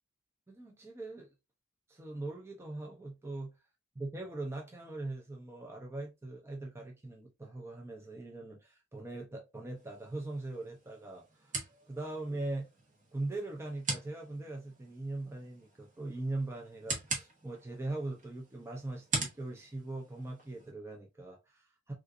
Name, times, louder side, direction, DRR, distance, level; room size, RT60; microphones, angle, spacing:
voice 1, 0.5-1.3 1.9-3.5 4.0-11.6 11.9-12.7 13.1-21.9, right 2 dB, 10° right, 0.5 m, -41 dB
sound 1, 9.7-20.7, right 3 dB, 40° right, 1.1 m, -43 dB
3.6 x 2.4 x 2.6 m
head